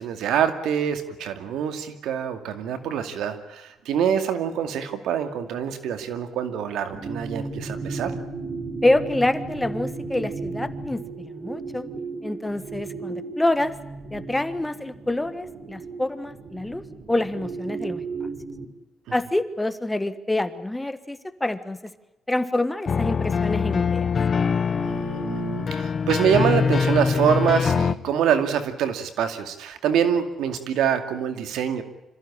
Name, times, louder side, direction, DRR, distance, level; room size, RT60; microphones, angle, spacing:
voice 1, 0.0-8.1 24.8-31.8, right 8 dB, 85° right, 8 dB, 2.4 m, -25 dB
sound 1, 6.9-18.6, right 4 dB, 60° right, 4.0 m, -35 dB
voice 2, 8.8-11.9 12.2-13.7 14.1-16.8 17.1-18.0 19.1-21.8 22.3-24.1, left 1 dB, 10° left, 12 dB, 1.5 m, -26 dB
sound 2, 22.9-27.9, left 6 dB, 45° left, 0.8 m, -23 dB
26.5 x 15.0 x 9.9 m, 1.0 s
cardioid pair, 90°, 0 cm